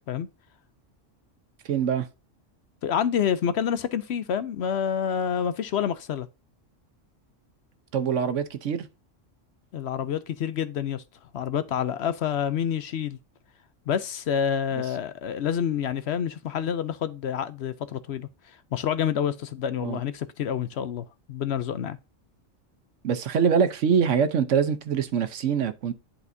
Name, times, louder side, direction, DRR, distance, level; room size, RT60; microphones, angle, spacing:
voice 1, 1.7-2.1 7.9-8.9 19.8-20.0 23.0-25.9, right 7 dB, 70° right, 1.1 m, -24 dB
voice 2, 2.8-6.3 9.7-11.0 11.3-13.2 13.9-22.0, left 8 dB, 65° left, 0.8 m, -28 dB
11.0 x 4.2 x 2.6 m
omnidirectional pair, 1.3 m